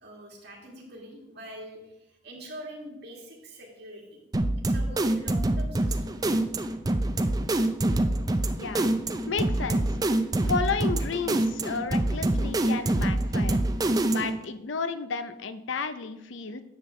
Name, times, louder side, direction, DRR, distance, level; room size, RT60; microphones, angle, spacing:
voice 1, 0.0-1.8 2.2-4.2 4.7-6.6, equal, 55° right, -2 dB, 2.3 m, -44 dB
sound 1, 4.3-14.4, right 1 dB, 20° right, 0.4 m, -26 dB
voice 2, 9.3-9.8 10.5-13.6 14.1-16.6, left 4 dB, 70° left, 11 dB, 0.6 m, -32 dB
10.0 x 7.1 x 3.2 m, 0.91 s
head